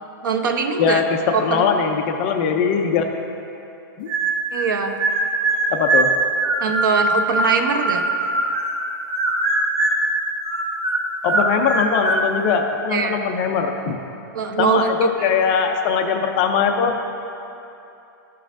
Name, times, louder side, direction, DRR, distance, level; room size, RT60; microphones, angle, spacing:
voice 1, 0.2-1.0 1.3-1.7 4.5-5.0 6.6-8.1 12.9-13.3 14.3-15.3, right 5 dB, 65° right, 6 dB, 0.7 m, -22 dB
voice 2, 1.4-3.1 4.0-4.1 5.7-6.1 11.2-14.0 14.6-16.9, left 6 dB, 20° left, 4 dB, 0.3 m, -21 dB
sound 1, 4.1-4.7 5.0-8.8 9.1-10.1 10.4-12.3, right 2 dB, 35° right, 1.1 m, -21 dB
14.0 x 5.4 x 2.5 m, 2.8 s
hypercardioid pair, 175°, 11 cm